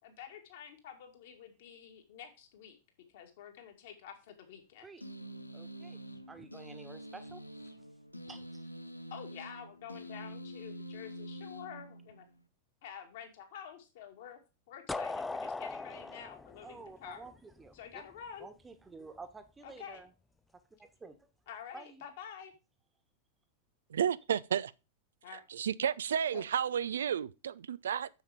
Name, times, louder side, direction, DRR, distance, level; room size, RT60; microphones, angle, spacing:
voice 1, 0.0-2.8 3.1-4.9 9.1-12.3 12.8-14.4 14.7-17.3 17.7-18.5 19.6-20.0 21.5-22.5 25.2-25.4 25.8-25.9 26.3-26.4, left 8 dB, 55° left, 2.3 m, -49 dB
sound 1, 5.0-12.4, equal, 85° left, 0.8 m, -46 dB
voice 2, 5.5-6.0 6.3-7.4 8.3-8.6 16.6-18.0 18.4-20.1 20.7-21.2 21.7-22.0, right 3 dB, 15° right, 1.4 m, -50 dB
sound 2, 14.9-17.7, left 3 dB, 10° left, 0.4 m, -39 dB
voice 3, 23.9-24.7 25.3-28.1, right 8 dB, 65° right, 0.4 m, -32 dB
7.2 x 7.1 x 5.1 m
figure-of-eight pair, 90°, 0 cm